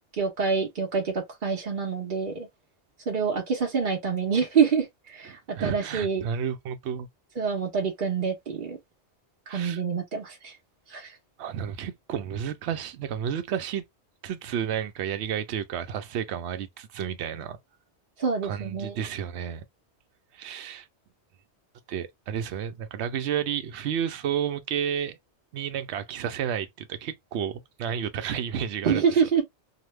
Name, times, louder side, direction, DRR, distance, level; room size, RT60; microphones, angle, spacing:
voice 1, 0.2-2.5 3.1-6.2 7.4-8.8 9.5-10.5 10.9-11.1 18.2-19.0 28.8-29.4, right 6 dB, 50° right, 0.9 m, -26 dB
voice 2, 5.2-7.1 9.5-9.8 11.4-13.8 14.2-17.6 18.4-19.6 20.3-20.9 21.9-25.2 25.5-29.2, right 8 dB, 80° right, 0.9 m, -31 dB
2.8 x 2.1 x 3.2 m
omnidirectional pair, 1.1 m